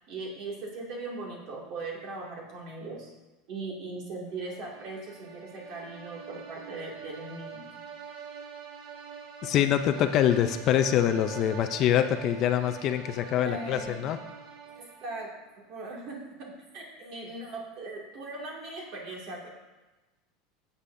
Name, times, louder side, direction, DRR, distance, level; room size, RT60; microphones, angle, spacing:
voice 1, 0.1-3.1 3.5-7.7 13.4-13.9 14.7-19.5, right 3 dB, 40° right, -2 dB, 2.2 m, -39 dB
sound 1, 4.4-15.3, right 7 dB, 60° right, 1.7 m, -45 dB
voice 2, 9.4-14.2, left 10 dB, 35° left, 8 dB, 0.4 m, -25 dB
14.0 x 8.3 x 2.6 m, 1.1 s
supercardioid pair, 175°, 0 cm